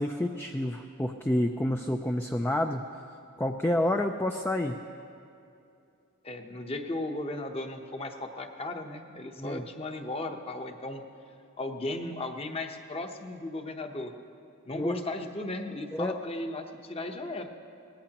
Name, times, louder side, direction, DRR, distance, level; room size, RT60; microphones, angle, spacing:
voice 1, 0.0-2.8 3.4-4.8 9.4-9.6 14.8-15.0 15.9-16.2, left 1 dB, 10° left, 4 dB, 0.4 m, -29 dB
voice 2, 6.2-11.0 11.6-14.1 14.6-17.5, left 2 dB, 25° left, 5 dB, 0.9 m, -36 dB
23.0 x 18.5 x 2.9 m, 2.6 s
head